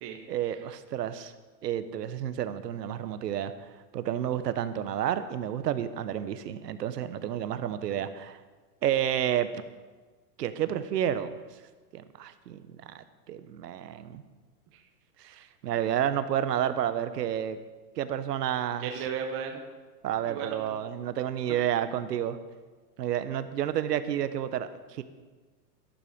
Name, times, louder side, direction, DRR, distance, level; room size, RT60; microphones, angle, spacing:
voice 1, 0.3-1.3 1.6-8.4 8.8-9.5 10.4-11.3 11.9-14.2 15.2-17.6 18.0-18.9 20.0-22.4 23.0-25.0, right 10 dB, 75° right, 12 dB, 1.3 m, -30 dB
voice 2, 18.8-19.6 20.2-20.8, right 7 dB, 25° right, 4 dB, 1.3 m, -35 dB
13.0 x 12.0 x 5.2 m, 1.4 s
hypercardioid pair, 145°, 49 cm